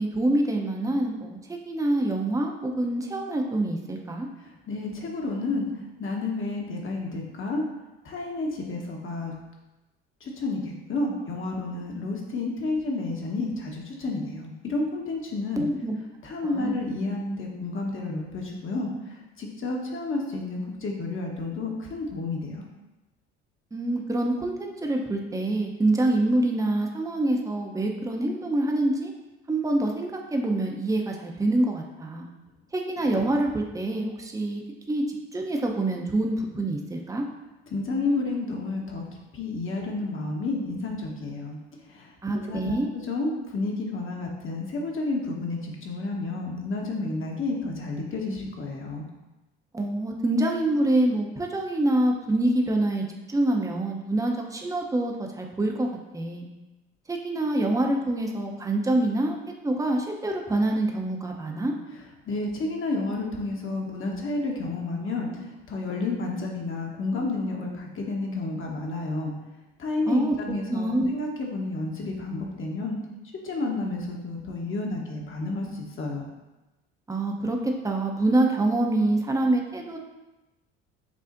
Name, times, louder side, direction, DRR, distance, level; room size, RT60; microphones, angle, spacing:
voice 1, 0.0-4.3 15.6-16.0 16.4-16.8 23.7-29.1 29.5-32.3 32.7-34.6 34.9-35.0 35.3-37.2 42.2-42.9 49.7-55.9 56.1-56.5 57.1-61.7 70.1-70.3 70.7-71.1 77.1-80.0, right 1 dB, 10° right, 1 dB, 0.7 m, -26 dB
voice 2, 4.4-5.7 6.0-7.7 8.0-9.3 10.2-15.6 16.2-22.6 37.7-39.0 39.3-41.6 41.9-49.1 62.2-69.3 69.8-73.0 73.4-76.3, left 2 dB, 40° left, 0 dB, 1.1 m, -31 dB
6.9 x 2.4 x 2.5 m, 1.1 s
hypercardioid pair, 65°, 32 cm